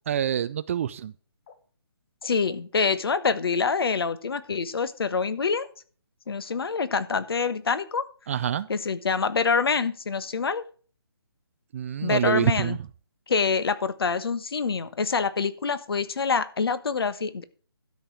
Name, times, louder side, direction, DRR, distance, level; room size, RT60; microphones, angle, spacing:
voice 1, 0.1-1.1 8.3-8.7 11.7-12.8, right 9 dB, 30° right, 15 dB, 0.4 m, -26 dB
sound 1, 1.5-1.6 2.2-2.3 3.1-3.2 3.9-4.0 4.8-4.9 5.6-5.7 6.5-6.6 7.4-7.6 8.4-8.5, left 6 dB, 30° left, 1.4 m, -50 dB
voice 2, 2.2-5.7 6.3-8.0 8.7-10.6 12.0-12.8 13.3-17.4, left 5 dB, 65° left, 14 dB, 1.2 m, -26 dB
12.5 x 5.4 x 6.0 m, 0.41 s
figure-of-eight pair, 150°, 13 cm